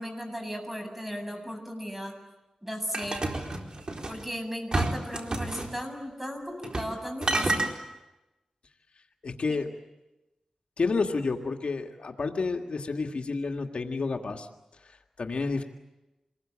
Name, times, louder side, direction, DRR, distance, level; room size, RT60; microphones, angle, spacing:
voice 1, 0.0-2.2 2.6-3.3 4.1-7.7 9.5-9.6, equal, 10° right, 4 dB, 7.6 m, -36 dB
sound 1, 2.9-4.2 4.7-5.7 6.6-6.9 7.2-7.7, right 2 dB, 45° right, 4.2 m, -29 dB
voice 2, 9.2-9.7 10.8-14.5 14.8-15.6, left 4 dB, 70° left, 3 dB, 1.9 m, -30 dB
28.0 x 21.5 x 8.9 m, 1.0 s
wide cardioid pair, 70°, 2 cm